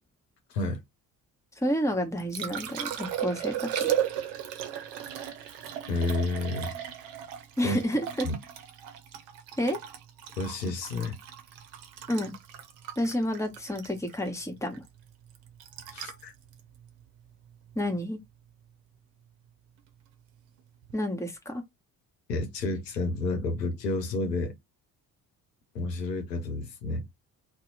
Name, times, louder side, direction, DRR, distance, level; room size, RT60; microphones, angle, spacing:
voice 1, 0.5-0.8 5.9-6.7 7.6-7.8 8.2-8.4 10.4-11.2 15.9-16.3 22.3-24.5 25.7-27.1, left 2 dB, 90° left, 0.6 m, -30 dB
voice 2, 1.6-4.0 7.6-8.3 9.6-9.8 12.1-12.3 13.0-14.8 17.7-18.2 20.9-21.6, equal, 5° left, 1.1 m, -30 dB
Liquid, 1.9-18.0 20.8-21.0, right 10 dB, 60° right, 0.8 m, -36 dB
2.7 x 2.1 x 3.9 m
figure-of-eight pair, 45°, 49 cm